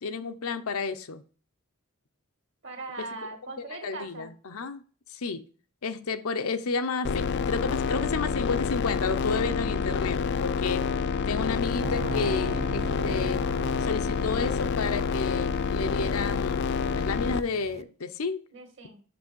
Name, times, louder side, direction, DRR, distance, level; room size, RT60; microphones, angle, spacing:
voice 1, 0.0-1.2 3.8-4.8 5.1-5.4 5.8-10.9 11.3-13.4 13.8-18.4, left 4 dB, 75° left, 0.7 m, -31 dB
voice 2, 2.6-4.3 18.5-19.0, right 3 dB, 55° right, 1.9 m, -40 dB
sound 1, 7.0-17.4, left 5 dB, 50° left, 0.4 m, -28 dB
sound 2, 11.8-17.8, right 3 dB, 30° right, 0.4 m, -41 dB
6.2 x 6.1 x 6.2 m
head